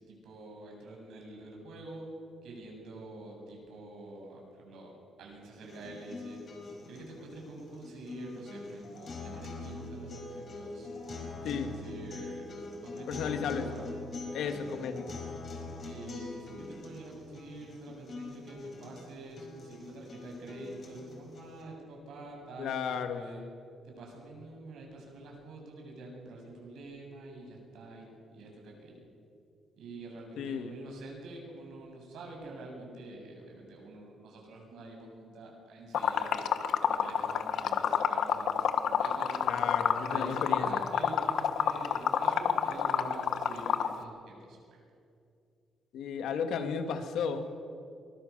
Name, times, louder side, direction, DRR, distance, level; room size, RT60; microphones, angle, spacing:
voice 1, 0.0-2.0 2.4-4.9 5.2-6.4 6.9-10.9 11.4-12.5 12.8-13.9 14.3-14.7 15.8-23.4 23.8-28.9 29.8-36.5 36.8-39.4 40.1-44.8, right 2 dB, 80° right, 0 dB, 7.7 m, -46 dB
sound 1, 5.6-21.6, left 3 dB, 40° left, 5.2 m, -44 dB
voice 2, 13.1-13.7 14.3-15.0 22.6-23.2 30.4-30.7 39.4-40.8 45.9-47.5, left 6 dB, 85° left, 7 dB, 2.0 m, -34 dB
Liquid, 35.9-43.9, left 8 dB, 65° left, 1.3 m, -28 dB
24.0 x 20.5 x 6.9 m, 2.5 s
cardioid pair, 165°, 0 cm